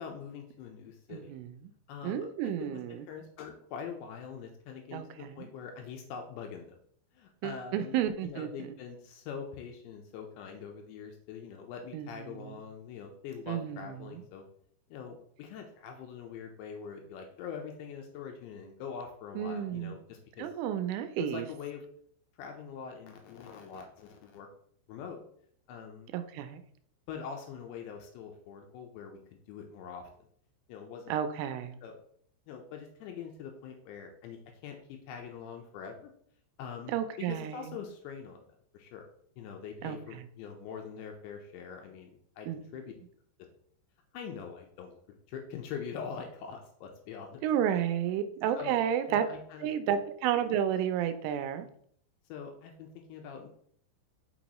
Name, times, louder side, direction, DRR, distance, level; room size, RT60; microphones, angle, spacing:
voice 1, 0.0-1.3 1.9-2.3 2.6-2.8 3.1-6.8 7.1-8.0 8.2-14.4 14.9-20.5 21.2-21.8 22.4-24.5 24.9-25.2 25.7-26.1 27.1-29.2 29.5-30.1 30.7-31.1 31.8-32.0 32.5-36.1 36.6-38.4 38.7-39.1 39.4-42.1 42.4-42.5 42.7-42.9 44.1-45.0 45.3-47.4 48.5-48.8 49.1-49.7 52.3-53.5, left 6 dB, 80° left, 3 dB, 2.8 m, -43 dB
voice 2, 1.1-1.7 2.0-3.1 4.9-5.5 7.4-8.7 11.9-12.6 13.5-14.2 19.4-20.0 20.4-21.5 26.1-26.6 31.1-31.8 36.9-37.8 39.8-40.3 42.5-42.6 47.4-49.3 49.6-51.7, right 9 dB, 85° right, 9 dB, 3.1 m, -32 dB
6.3 x 6.2 x 3.0 m, 0.63 s
omnidirectional pair, 5.6 m